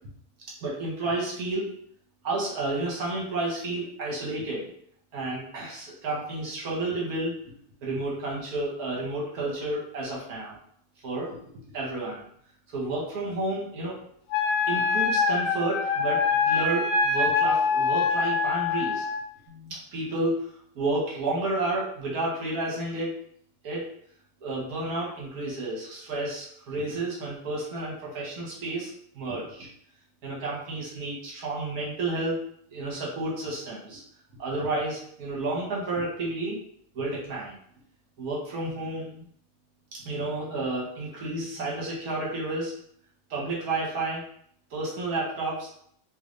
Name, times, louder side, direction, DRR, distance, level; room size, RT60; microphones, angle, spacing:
voice 1, 0.6-1.7 2.2-4.7 5.1-7.3 7.8-10.6 11.0-11.4 11.7-12.2 12.7-14.0 14.7-19.0 19.5-20.3 20.7-23.1 23.6-23.9 24.4-29.7 30.2-32.4 32.7-34.0 34.4-36.6 36.9-37.6 38.2-39.2 39.9-42.7 43.3-44.2 44.7-45.7, right 2 dB, 55° right, -4 dB, 1.2 m, -31 dB
Wind instrument woodwind instrument, 14.3-19.2, left 4 dB, 85° left, 1.5 m, -24 dB
3.2 x 3.1 x 2.6 m, 0.64 s
omnidirectional pair, 2.3 m